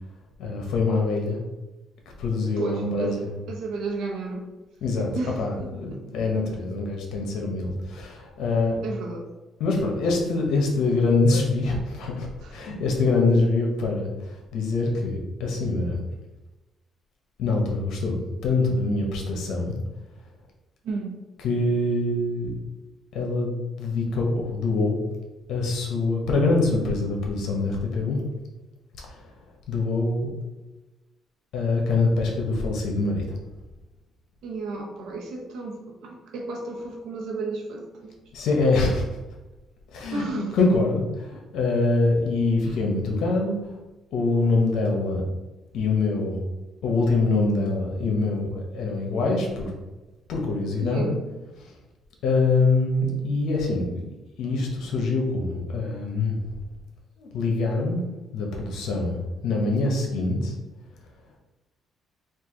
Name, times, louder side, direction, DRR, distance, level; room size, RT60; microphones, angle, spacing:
voice 1, 0.4-1.4 2.2-3.2 4.8-8.8 9.6-16.0 17.4-19.8 21.4-22.5 23.1-25.0 25.5-28.2 29.0-29.2 29.7-30.3 31.5-33.3 38.3-39.1 39.9-43.6 44.1-45.2 45.7-46.4 46.8-49.7 50.3-51.1 52.2-54.0 54.4-56.4 57.2-58.0 58.3-59.2 59.4-60.5, left 3 dB, 80° left, 1 dB, 1.1 m, -24 dB
voice 2, 2.6-4.5 5.1-6.0 8.8-9.3 12.4-12.6 20.8-21.2 34.4-38.1 40.1-40.6 42.7-42.8 50.8-51.2, right 3 dB, 80° right, 0 dB, 1.0 m, -33 dB
4.6 x 2.6 x 3.8 m, 1.1 s
cardioid pair, 105°, 0 cm